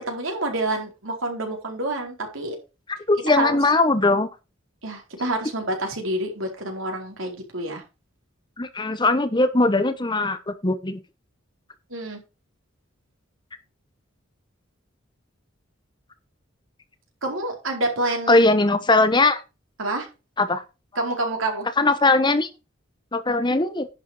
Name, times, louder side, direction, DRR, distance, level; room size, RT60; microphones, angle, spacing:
voice 1, 0.0-2.6 3.3-3.6 4.8-7.8 11.9-12.2 17.2-18.4 19.8-20.1 21.0-21.7, right 2 dB, 75° right, 4.2 m, -28 dB
voice 2, 3.1-4.3 8.6-11.0 18.3-19.4 20.4-20.6 21.8-22.5 23.1-23.9, left 2 dB, 20° left, 1.0 m, -20 dB
11.0 x 6.4 x 4.9 m
head